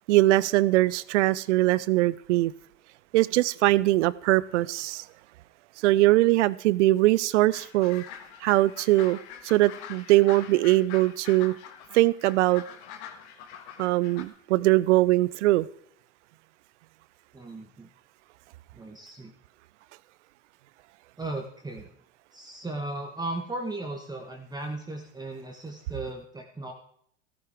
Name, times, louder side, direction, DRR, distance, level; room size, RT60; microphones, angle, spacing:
voice 1, 0.1-2.5 3.1-5.0 5.8-8.0 8.4-9.2 9.4-11.5 11.9-12.6 13.8-15.7, right 17 dB, 70° right, 0.6 m, -21 dB
sound 1, 7.5-14.3, left 9 dB, 60° left, 1.6 m, -44 dB
voice 2, 17.3-17.9 18.7-19.3 21.2-21.9 22.3-26.7, right 2 dB, 10° right, 1.4 m, -36 dB
14.5 x 13.5 x 3.6 m
hypercardioid pair, 85°, 37 cm